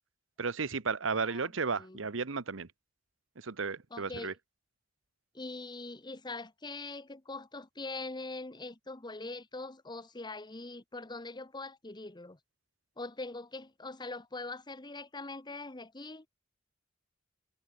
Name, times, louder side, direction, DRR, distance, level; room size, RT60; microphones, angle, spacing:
voice 1, 0.4-2.7 3.4-4.3, right 5 dB, 75° right, 1.0 m, -34 dB
voice 2, 1.2-2.0 3.9-4.4 5.3-12.4 13.0-16.3, left 2 dB, 20° left, 1.3 m, -42 dB
head